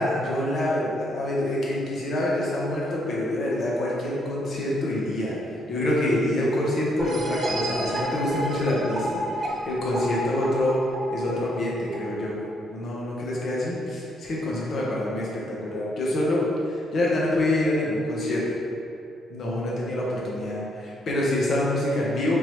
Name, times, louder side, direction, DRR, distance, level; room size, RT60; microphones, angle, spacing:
voice 1, 0.0-5.4 5.7-10.8 11.1-12.4 12.7-18.6 19.3-22.4, left 1 dB, 55° left, -5 dB, 0.9 m, -26 dB
sound 1, 7.0-12.5, right 1 dB, 45° right, 0.5 m, -32 dB
3.6 x 3.1 x 3.1 m, 2.5 s
cardioid pair, 90°, 0 cm